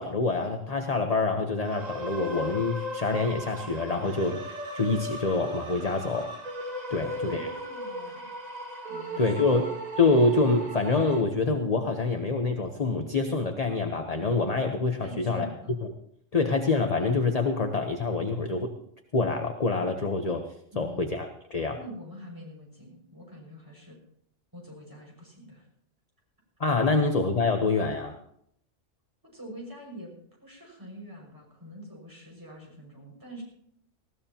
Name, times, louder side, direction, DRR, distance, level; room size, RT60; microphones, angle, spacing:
voice 1, 0.0-4.4 4.7-6.3 6.9-7.5 9.2-9.7 10.0-15.5 15.8-15.9 16.3-18.7 19.1-20.4 20.8-21.8 26.6-28.2, left 3 dB, 35° left, 5 dB, 1.0 m, -26 dB
sound 1, 1.6-11.2, equal, 35° right, 1.6 m, -37 dB
voice 2, 6.9-8.3 8.9-9.5 15.0-15.8 20.7-21.1 21.7-24.0 24.5-25.7 26.8-27.0 29.3-30.1 30.4-33.4, equal, 15° right, -2 dB, 6.0 m, -45 dB
19.5 x 16.0 x 2.9 m, 0.70 s
omnidirectional pair, 1.3 m